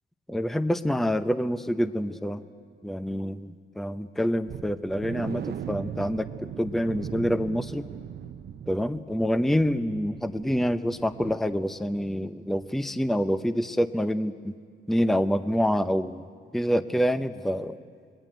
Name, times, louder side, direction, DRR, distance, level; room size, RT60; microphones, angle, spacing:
voice 1, 0.3-2.4 2.8-7.9 8.7-14.5 14.9-16.3 16.5-17.8, equal, ahead, 11 dB, 0.7 m, -27 dB
sound 1, 4.5-12.2 12.5-12.7 13.1-13.2, right 9 dB, 55° right, 0.8 m, -39 dB
25.5 x 21.0 x 9.1 m, 2.1 s
cardioid pair, 90°, 20 cm